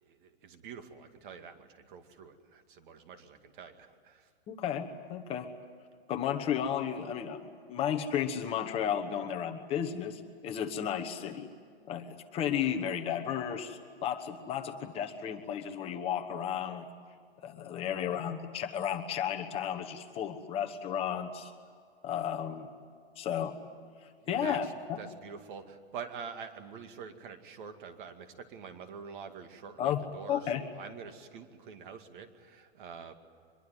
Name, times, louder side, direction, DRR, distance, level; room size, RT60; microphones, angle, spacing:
voice 1, 0.0-4.3 17.9-18.3 24.2-24.7 25.0-33.1, right 6 dB, 50° right, 7 dB, 2.3 m, -46 dB
voice 2, 4.5-5.5 6.1-7.4 7.7-11.5 11.9-16.9 17.4-21.5 22.0-22.7 23.2-23.5 24.0-25.0 29.8-30.0 30.3-30.6, left 9 dB, 20° left, 5 dB, 1.2 m, -33 dB
24.5 x 22.0 x 9.3 m, 2.1 s
hypercardioid pair, 160°, 32 cm